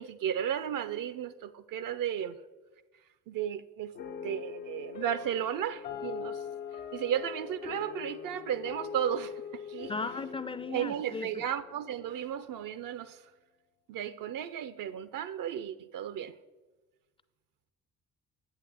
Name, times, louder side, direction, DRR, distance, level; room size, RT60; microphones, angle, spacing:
voice 1, 0.0-2.4 3.3-3.9 4.2-6.4 6.9-9.9 10.6-13.2 13.9-16.3, right 10 dB, 55° right, 0.5 m, -34 dB
sound 1, 4.0-12.5, left 7 dB, 80° left, 1.0 m, -42 dB
voice 2, 9.9-11.3, left 4 dB, 15° left, 0.4 m, -36 dB
8.1 x 8.0 x 3.3 m
hypercardioid pair, 50°, 40 cm